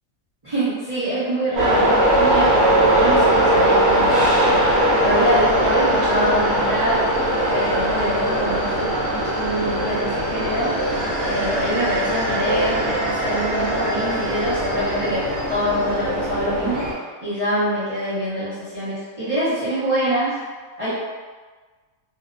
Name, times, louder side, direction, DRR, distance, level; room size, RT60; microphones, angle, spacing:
voice 1, 0.4-1.8 2.2-4.6 5.0-7.0 7.5-16.8 17.2-20.3 20.8-20.9, equal, 45° right, -12 dB, 0.4 m, -25 dB
sound 1, 1.6-16.9, right 1 dB, 65° right, 1.1 m, -20 dB
2.7 x 2.0 x 2.4 m, 1.4 s
omnidirectional pair, 1.5 m